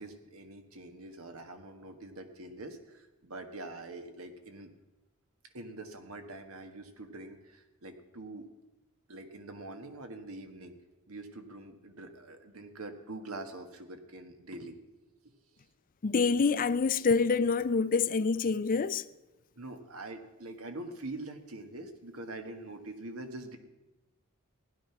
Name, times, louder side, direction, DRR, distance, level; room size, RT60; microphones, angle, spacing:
voice 1, 0.0-4.7 5.4-8.5 9.1-10.8 11.1-14.8 19.5-23.6, right 2 dB, 75° right, 1.5 m, -44 dB
voice 2, 16.0-19.0, left 4 dB, 40° left, 0.5 m, -26 dB
15.5 x 11.0 x 5.9 m
head